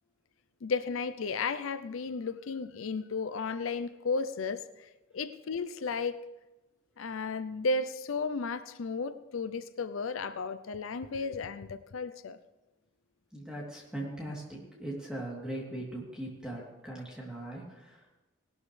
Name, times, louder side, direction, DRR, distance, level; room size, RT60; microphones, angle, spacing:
voice 1, 0.6-6.2 7.0-12.4, left 4 dB, 80° left, 12 dB, 0.5 m, -34 dB
voice 2, 13.3-18.2, right 1 dB, 5° right, -4 dB, 3.1 m, -40 dB
19.0 x 12.5 x 3.3 m, 1.1 s
head